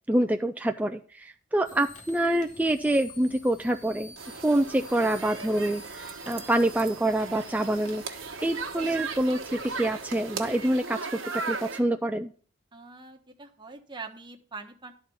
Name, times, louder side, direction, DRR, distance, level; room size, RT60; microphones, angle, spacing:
voice 1, 0.1-4.1 4.4-12.3, right 1 dB, 10° right, 5 dB, 0.4 m, -26 dB
sound 1, 1.6-10.8, left 2 dB, 40° left, 1.8 m, -50 dB
sound 2, 4.2-11.8, right 4 dB, 70° right, 1.2 m, -37 dB
voice 2, 12.7-14.9, right 4 dB, 25° right, 3 dB, 1.1 m, -43 dB
12.0 x 4.2 x 6.9 m, 0.43 s
head